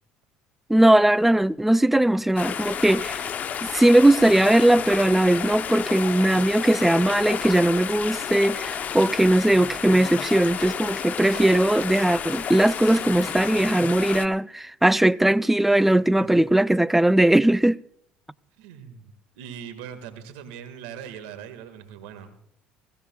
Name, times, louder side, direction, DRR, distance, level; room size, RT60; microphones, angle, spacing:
voice 1, 0.7-3.3 3.7-17.8, right 1 dB, 5° right, 0.4 m, -19 dB
sound 1, 2.4-14.3, left 8 dB, 45° left, 0.7 m, -31 dB
voice 2, 18.6-22.4, right 8 dB, 85° right, 1.7 m, -41 dB
22.0 x 15.5 x 2.3 m
supercardioid pair, 80°, 4 cm